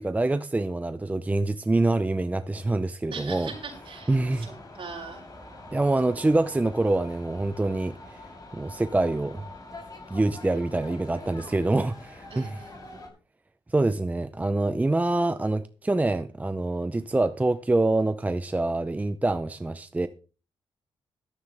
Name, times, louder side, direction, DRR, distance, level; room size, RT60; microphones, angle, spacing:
voice 1, 0.0-3.5 4.1-4.5 5.7-8.0 8.5-9.4 10.1-12.5 13.7-20.1, right 2 dB, 15° right, 0.6 m, -25 dB
voice 2, 3.1-5.2 12.3-13.1, right 5 dB, 55° right, 6.3 m, -41 dB
sound 1, 3.3-13.1, left 2 dB, 35° left, 6.8 m, -45 dB
13.5 x 13.0 x 3.4 m
cardioid pair, 110°, 10 cm